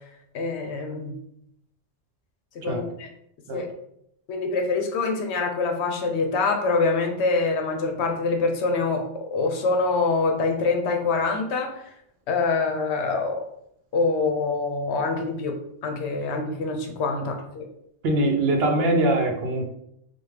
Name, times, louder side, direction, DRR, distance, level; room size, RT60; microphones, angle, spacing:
voice 1, 0.3-1.1 2.5-3.1 3.5-3.7 4.3-11.8 12.3-13.4 13.9-15.6 15.8-17.7, left 3 dB, 75° left, 4 dB, 0.9 m, -25 dB
voice 2, 18.0-19.7, right 1 dB, 70° right, 3 dB, 0.8 m, -22 dB
3.4 x 2.2 x 3.2 m, 0.75 s
omnidirectional pair, 1.2 m